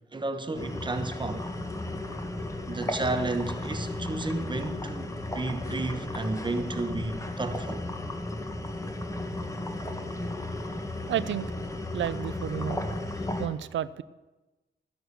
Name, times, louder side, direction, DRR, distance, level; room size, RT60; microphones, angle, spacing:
voice 1, 0.1-1.5 2.7-5.1 5.3-7.9, right 2 dB, 25° right, 1.3 m, -32 dB
sound 1, 0.5-13.5, left 1 dB, 15° left, 1.7 m, -34 dB
voice 2, 11.1-11.5 11.9-12.8 13.4-14.0, right 10 dB, 90° right, 0.6 m, -31 dB
13.5 x 10.5 x 6.8 m
cardioid pair, 110°, 19 cm